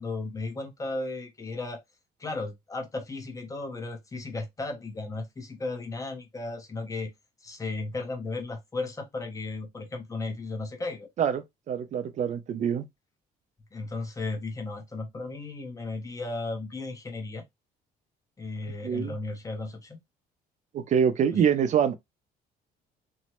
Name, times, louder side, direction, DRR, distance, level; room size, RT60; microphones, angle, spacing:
voice 1, 0.0-1.8 2.2-7.1 7.4-11.1 13.7-17.4 18.4-20.0 21.3-21.4, left 3 dB, 20° left, 0.8 m, -35 dB
voice 2, 11.2-12.9 18.8-19.2 20.7-22.0, right 8 dB, 45° right, 0.5 m, -25 dB
3.1 x 2.1 x 2.9 m
cardioid pair, 110°, 17 cm